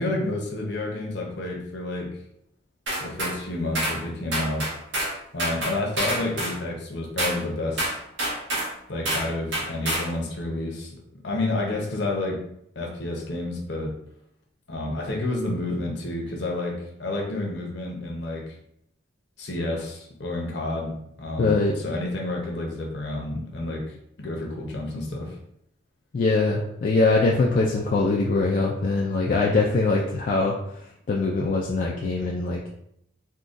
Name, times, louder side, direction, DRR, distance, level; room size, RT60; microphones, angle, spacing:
voice 1, 0.0-2.1 3.0-4.7 5.3-7.9 8.9-11.0 11.2-12.4 12.8-13.9 14.7-18.5 19.4-25.4, left 2 dB, 65° left, -1 dB, 0.8 m, -30 dB
sound 1, 2.9-3.3 3.7-4.0 4.3-5.1 5.4-6.6 7.2-7.4 7.8-8.7 9.0-9.3 9.5-10.1, right 1 dB, 70° right, 1.2 m, -27 dB
voice 2, 21.4-21.8 26.1-32.7, left 3 dB, 45° left, -2 dB, 0.3 m, -23 dB
3.7 x 2.3 x 2.5 m, 0.74 s
head